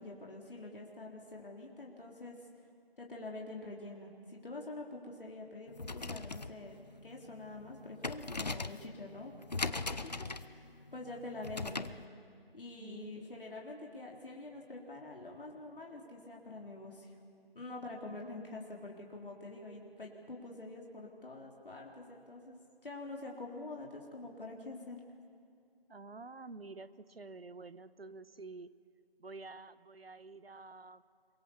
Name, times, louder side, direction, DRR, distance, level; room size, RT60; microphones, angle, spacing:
voice 1, 0.0-2.4 3.0-6.8 7.0-11.9 12.5-17.1 17.5-25.0, left 2 dB, 60° left, -1 dB, 3.8 m, -46 dB
sound 1, 5.7-12.0, left 3 dB, 45° left, 0.7 m, -41 dB
voice 2, 12.8-13.1 25.9-28.7 29.2-31.0, right 3 dB, 75° right, 15 dB, 1.1 m, -49 dB
28.0 x 23.0 x 7.2 m, 2.3 s
figure-of-eight pair, 170°, 30 cm